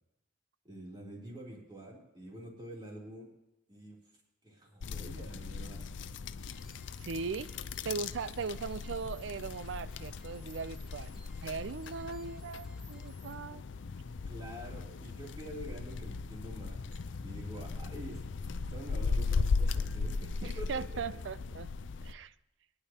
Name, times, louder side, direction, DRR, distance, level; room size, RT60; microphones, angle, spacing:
voice 1, 0.6-3.3 3.7-4.0 4.4-6.0 14.2-16.8 17.2-18.2 18.7-21.0, right 1 dB, 25° right, -3 dB, 3.1 m, -46 dB
sound 1, 4.8-22.1, left 4 dB, 80° left, 0.5 m, -37 dB
sound 2, 6.5-13.4, equal, 5° right, 2.3 m, -60 dB
voice 2, 7.0-7.5 7.8-13.6 20.4-21.7 22.0-22.3, right 5 dB, 80° right, 16 dB, 0.4 m, -39 dB
22.0 x 10.0 x 2.9 m, 0.93 s
head